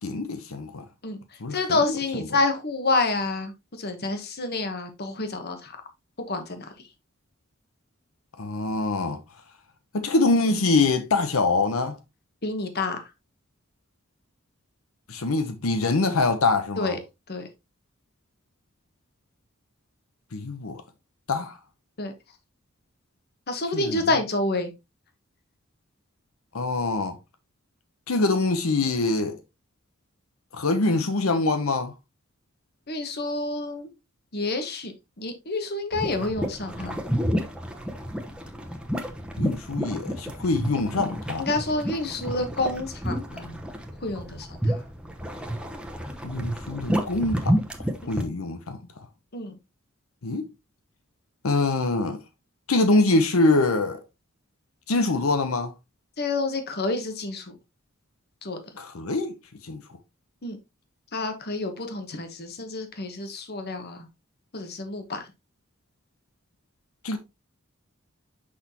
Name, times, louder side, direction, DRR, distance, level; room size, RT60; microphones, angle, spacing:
voice 1, 0.0-0.8 1.4-1.8 8.4-9.2 9.9-12.0 15.1-17.0 20.3-20.8 21.3-21.6 23.7-24.0 26.5-27.2 28.1-29.4 30.5-31.9 39.4-41.5 46.2-47.6 48.1-48.8 50.2-50.5 51.4-52.2 52.7-54.0 54.9-55.7 58.8-59.3 59.6-59.8 67.0-67.2, left 3 dB, 90° left, 0.9 m, -24 dB
voice 2, 1.5-5.8 6.3-6.7 12.4-13.0 16.8-17.0 17.3-17.5 22.0-22.1 23.5-24.7 32.9-33.9 34.3-34.9 35.2-37.0 41.4-43.6 44.0-44.8 49.3-49.6 56.2-57.5 58.4-58.6 60.4-60.6 61.1-64.1 64.5-65.3, left 2 dB, 50° left, 1.2 m, -28 dB
sound 1, 35.9-48.2, equal, 5° right, 0.9 m, -30 dB
6.2 x 5.8 x 2.9 m
head